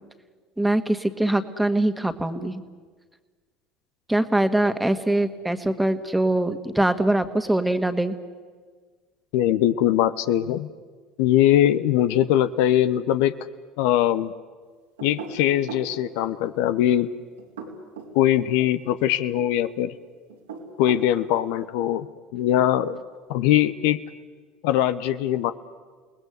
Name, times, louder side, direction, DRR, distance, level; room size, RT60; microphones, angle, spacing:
voice 1, 0.6-2.6 4.1-8.1, right 1 dB, 5° right, 9 dB, 1.8 m, -23 dB
voice 2, 9.3-10.7 11.2-13.3 13.8-14.3 15.0-17.1 18.1-19.9 20.8-22.1 22.3-23.0 23.3-24.0 24.6-25.5, left 12 dB, 70° left, 12 dB, 0.8 m, -21 dB
sound 1, 15.0-15.9 17.4-18.2 20.3-21.1, right 4 dB, 85° right, 3.7 m, -37 dB
29.0 x 19.5 x 8.1 m, 1.5 s
hypercardioid pair, 75°, 0 cm